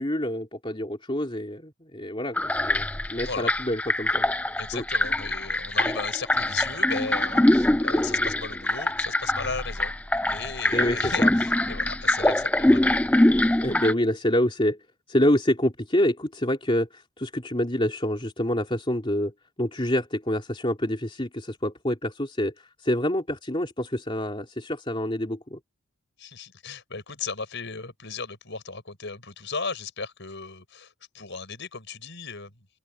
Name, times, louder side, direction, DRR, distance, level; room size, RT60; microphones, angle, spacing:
voice 1, 0.0-4.3 4.7-4.8 10.7-11.3 13.6-14.8 15.1-19.3 19.6-25.6, left 1 dB, 25° left, 3.2 m, -27 dB
sound 1, 2.4-13.9, left 1 dB, 5° left, 0.4 m, -23 dB
voice 2, 4.6-9.9 10.3-13.0 26.2-32.5, left 4 dB, 55° left, 6.6 m, -36 dB
open air
head